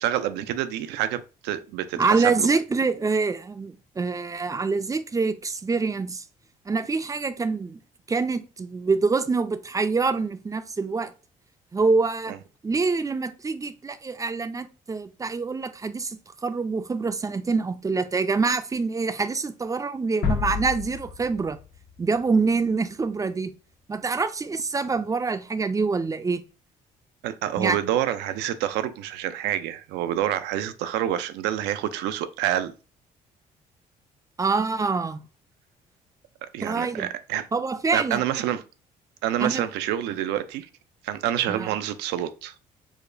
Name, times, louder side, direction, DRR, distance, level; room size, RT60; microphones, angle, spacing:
voice 1, 0.0-2.5 27.2-32.7 36.4-37.5 37.9-38.6 39.2-40.7 41.0-42.5, right 11 dB, 75° right, 0.4 m, -27 dB
voice 2, 2.0-6.2 6.7-7.8 8.1-11.1 11.7-12.3 12.6-21.6 22.0-23.5 23.9-26.4 27.6-27.8 34.4-35.2 36.6-37.1 37.5-38.2 39.4-39.6 41.5-41.7, right 4 dB, 20° right, 0.4 m, -25 dB
sound 1, 20.2-23.1, left 6 dB, 70° left, 1.0 m, -31 dB
4.9 x 2.1 x 2.5 m
supercardioid pair, 65°, 18 cm